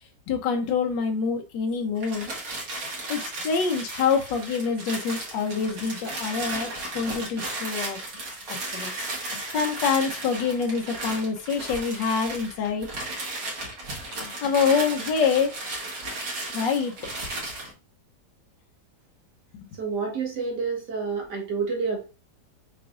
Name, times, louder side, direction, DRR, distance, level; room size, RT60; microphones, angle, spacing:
voice 1, 0.3-2.3 3.1-6.7 6.9-8.0 8.5-8.9 9.3-12.9 14.2-15.6 16.5-16.9, left 5 dB, 85° left, 4 dB, 1.5 m, -26 dB
sound 1, 2.0-17.7, right 2 dB, 85° right, 2.2 m, -35 dB
voice 2, 19.8-22.0, right 5 dB, 65° right, 0 dB, 1.8 m, -29 dB
5.7 x 3.4 x 2.5 m, 0.29 s
omnidirectional pair, 1.9 m